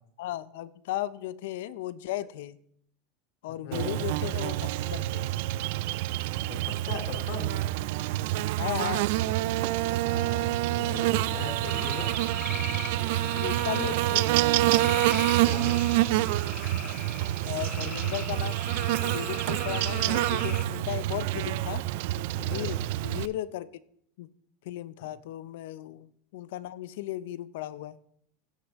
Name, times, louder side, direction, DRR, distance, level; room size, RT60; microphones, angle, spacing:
voice 1, 0.2-2.6 3.4-5.3 8.6-9.1 13.4-14.5 17.4-18.6 19.0-21.8 22.4-23.7 24.2-24.3 24.6-28.0, left 14 dB, 75° left, 17 dB, 0.5 m, -36 dB
voice 2, 3.5-3.9 6.5-6.6 6.9-7.5 9.6-12.1 12.8-12.9 13.3-14.0 15.4-15.8 22.3-22.8, left 4 dB, 60° left, 3 dB, 2.8 m, -40 dB
Buzz, 3.7-23.3, right 16 dB, 65° right, 0.3 m, -27 dB
sound 1, 11.6-20.6, left 7 dB, 25° left, 0.9 m, -41 dB
16.0 x 6.4 x 3.5 m, 0.67 s
supercardioid pair, 155°, 0 cm